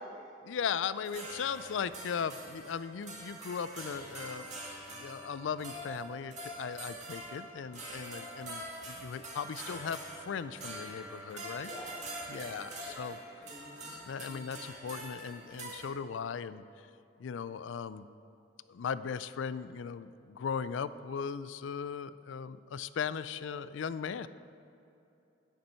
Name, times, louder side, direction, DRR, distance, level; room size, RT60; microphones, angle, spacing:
voice 1, 0.4-4.5 4.9-11.7 12.3-13.2 14.1-16.9 17.2-18.1 18.7-24.3, left 6 dB, 85° left, 15 dB, 0.4 m, -38 dB
sound 1, 0.9-15.9, right 1 dB, 40° right, 1.9 m, -45 dB
voice 2, 11.6-14.6, equal, 20° left, -5 dB, 1.2 m, -50 dB
9.9 x 9.5 x 4.4 m, 2.8 s
head